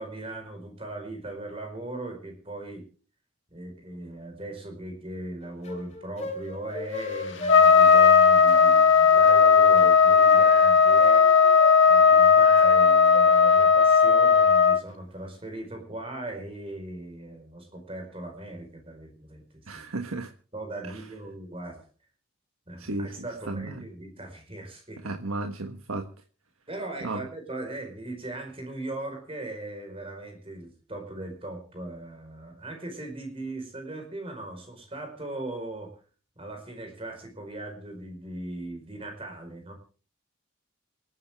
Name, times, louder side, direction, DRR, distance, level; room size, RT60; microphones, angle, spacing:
voice 1, 0.0-2.8 3.5-11.3 11.8-19.8 20.5-21.8 22.7-25.0 26.7-35.9 36.4-39.7, right 2 dB, 25° right, 3 dB, 5.0 m, -38 dB
sound 1, 5.4-13.9, left 1 dB, 30° left, 3.0 m, -39 dB
Trumpet, 7.5-14.8, left 6 dB, 55° left, 1.6 m, -17 dB
voice 2, 19.7-20.3 20.9-21.0 22.8-23.1 23.5-23.8 25.0-26.1 27.0-27.2, right 2 dB, 90° right, 4 dB, 1.5 m, -33 dB
28.0 x 9.8 x 3.7 m, 0.39 s
head